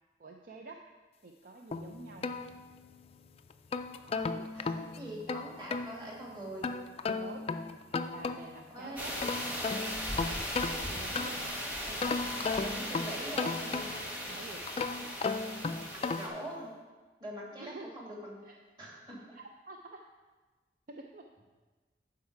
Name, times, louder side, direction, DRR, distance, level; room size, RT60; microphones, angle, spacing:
voice 1, 0.2-0.8 1.2-2.3 7.1-7.5 8.1-9.2 10.6-11.5 11.8-12.6 14.3-14.7 17.6-17.9 18.4-18.6 19.3-20.0 20.9-21.2, right 3 dB, 50° right, 2 dB, 0.5 m, -48 dB
sound 1, 1.7-3.1 3.5-5.9 6.6-8.7 9.0-11.5 12.0-14.2 14.7-16.4, left 4 dB, 35° left, 0.3 m, -35 dB
voice 2, 4.1-6.7 8.7-9.1 12.6-13.9 15.9-16.7 17.2-18.3 18.8-19.2, right 1 dB, 25° right, -3 dB, 2.2 m, -43 dB
sound 2, 9.0-16.3, equal, 10° right, 1.3 m, -38 dB
11.5 x 4.8 x 4.6 m, 1.3 s
head